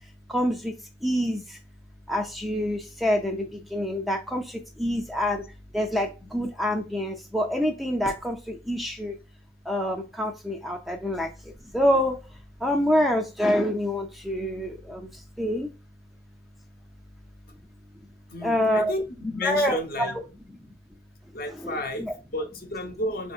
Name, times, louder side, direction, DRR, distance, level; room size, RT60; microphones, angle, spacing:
voice 1, 0.3-0.7 1.0-1.6 2.1-5.4 5.7-9.2 9.7-11.3 11.7-12.2 12.6-15.7 18.4-18.9 19.4-20.2 20.6-20.7 21.6-22.1, equal, ahead, 0.3 m, -26 dB
voice 2, 18.3-20.2 21.3-23.3, left 1 dB, 55° left, 0.8 m, -32 dB
4.9 x 2.7 x 2.3 m
head